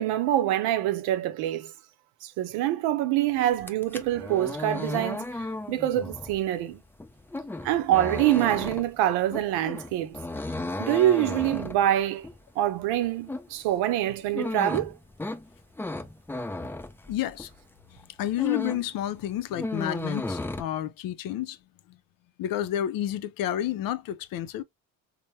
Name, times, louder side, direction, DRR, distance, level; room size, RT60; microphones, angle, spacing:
voice 1, 0.0-1.7 2.2-5.3 5.7-6.8 7.6-10.2 10.8-12.3 12.6-14.9, right 13 dB, 80° right, 0.6 m, -25 dB
sound 1, 3.5-17.6 18.0-18.9 19.2-20.6, left 2 dB, 5° left, 0.3 m, -35 dB
voice 2, 17.1-17.5 17.9-21.6 21.9-22.0 22.4-24.6, left 12 dB, 60° left, 0.5 m, -30 dB
3.2 x 2.1 x 2.7 m
supercardioid pair, 85°, 38 cm